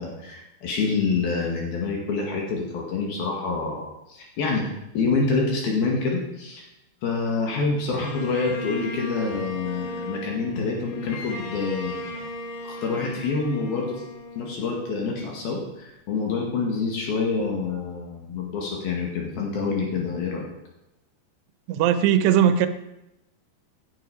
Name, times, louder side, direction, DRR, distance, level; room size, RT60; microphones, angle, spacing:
voice 1, 0.0-4.7 4.9-6.6 7.0-12.3 12.7-14.0 14.4-20.5, left 4 dB, 65° left, -1 dB, 3.8 m, -27 dB
Bowed string instrument, 8.0-15.2, left 1 dB, 90° left, 3.9 m, -36 dB
voice 2, 21.7-22.7, right 9 dB, 85° right, 10 dB, 3.0 m, -19 dB
16.5 x 12.0 x 5.0 m, 0.89 s
omnidirectional pair, 4.7 m